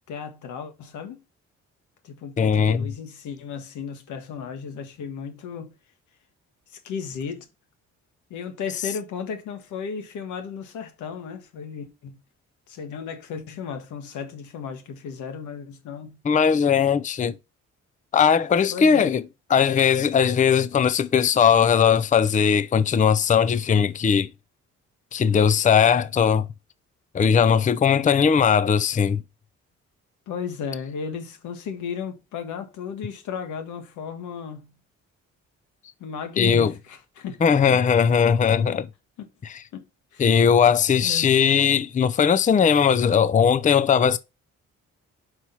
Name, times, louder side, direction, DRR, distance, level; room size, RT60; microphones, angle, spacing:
voice 1, 0.1-1.2 2.0-5.7 6.7-7.5 8.3-12.2 12.7-16.2 18.7-19.1 30.3-34.7 36.0-37.4 39.2-39.3 39.7-39.8 40.1-40.4 41.0-41.3, left 6 dB, 90° left, 1.5 m, -35 dB
voice 2, 2.4-2.8 16.3-17.3 18.1-19.2 19.5-24.3 25.1-26.5 27.1-29.2 36.4-36.7 37.4-38.9 40.2-44.2, left 7 dB, 25° left, 0.5 m, -19 dB
5.8 x 4.9 x 5.5 m
cardioid pair, 90°, 29 cm